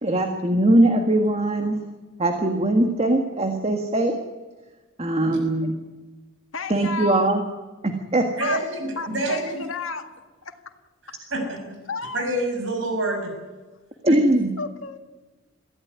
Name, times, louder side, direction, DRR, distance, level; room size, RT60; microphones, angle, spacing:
voice 1, 0.0-1.8 2.2-4.2 5.0-5.7 6.7-7.4 7.8-8.3 14.0-14.5, right 1 dB, 30° right, 5 dB, 1.7 m, -21 dB
voice 2, 6.5-7.3 8.4-8.6 9.0-10.6 11.9-12.3 14.6-15.0, left 3 dB, 80° left, 6 dB, 1.9 m, -32 dB
voice 3, 8.4-9.6 11.3-11.8 12.1-13.3 14.1-14.2, right 1 dB, 65° right, 4 dB, 6.0 m, -27 dB
23.5 x 15.5 x 9.5 m, 1.3 s
head